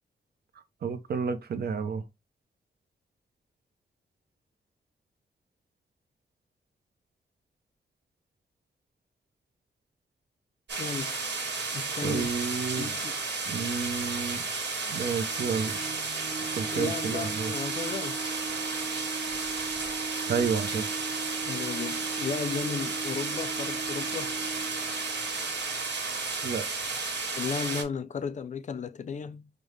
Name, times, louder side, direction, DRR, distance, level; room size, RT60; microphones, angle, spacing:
voice 1, 0.8-2.0 12.0-13.0 13.5-14.4 14.9-15.8 16.5-17.5 20.3-20.9 26.4-26.7, right 6 dB, 65° right, 0.6 m, -30 dB
sound 1, 10.7-27.8, right 4 dB, 85° right, 1.4 m, -33 dB
voice 2, 10.8-11.2 11.7-12.4 12.8-13.2 16.7-18.2 21.5-24.4 27.3-29.5, left 6 dB, 45° left, 0.4 m, -34 dB
sound 2, 15.1-26.3, right 4 dB, 25° right, 0.7 m, -39 dB
5.2 x 2.1 x 3.1 m
wide cardioid pair, 135°, 18 cm